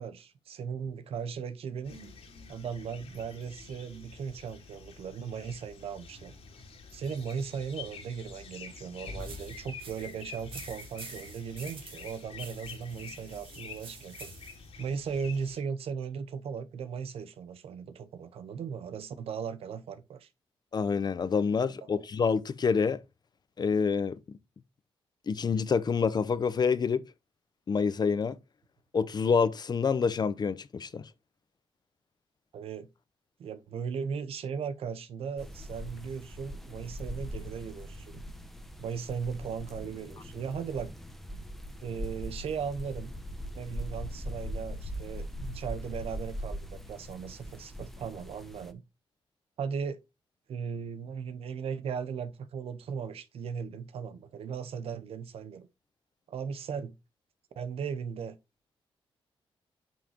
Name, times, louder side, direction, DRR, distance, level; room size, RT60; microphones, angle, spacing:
voice 1, 0.0-2.0 2.5-6.3 6.9-14.3 14.8-20.3 32.5-32.9 33.4-38.2 38.8-40.9 41.8-43.1 43.5-48.8 49.6-50.0 50.5-55.7 56.3-56.9 57.6-58.4, right 6 dB, 80° right, 1.0 m, -37 dB
sound 1, 1.8-15.6, left 4 dB, 80° left, 2.9 m, -47 dB
sound 2, 9.2-14.7, right 5 dB, 65° right, 2.3 m, -49 dB
voice 2, 20.7-23.0 23.6-24.2 25.3-27.0 27.7-28.4 28.9-31.0, left 5 dB, 45° left, 0.7 m, -27 dB
sound 3, 35.4-48.7, equal, ahead, 1.0 m, -41 dB
9.0 x 5.7 x 2.9 m
cardioid pair, 90°, 10 cm